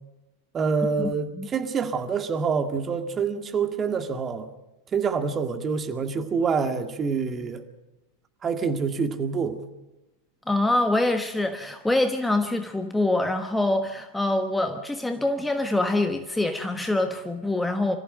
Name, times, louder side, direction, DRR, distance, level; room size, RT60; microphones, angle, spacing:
voice 1, 0.5-4.5 4.9-7.6 8.4-9.6, right 5 dB, 25° right, 6 dB, 2.0 m, -26 dB
voice 2, 10.5-18.0, left 2 dB, 5° left, 7 dB, 1.2 m, -25 dB
26.5 x 14.5 x 7.6 m, 1.0 s
figure-of-eight pair, 90°, 0 cm